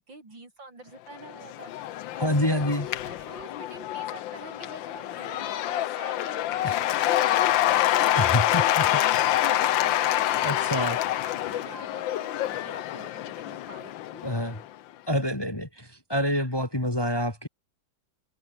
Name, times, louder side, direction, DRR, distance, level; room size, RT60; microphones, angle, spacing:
voice 1, 0.0-1.7 2.7-14.6, right 2 dB, 70° right, 7.1 m, -47 dB
Cheering / Applause / Crowd, 1.2-14.6, left 13 dB, 80° left, 1.5 m, -26 dB
voice 2, 2.2-2.9 6.6-6.7 8.1-8.8 10.4-11.0 14.2-14.6 15.1-17.5, left 1 dB, 10° left, 2.3 m, -27 dB
omnidirectional pair, 2.1 m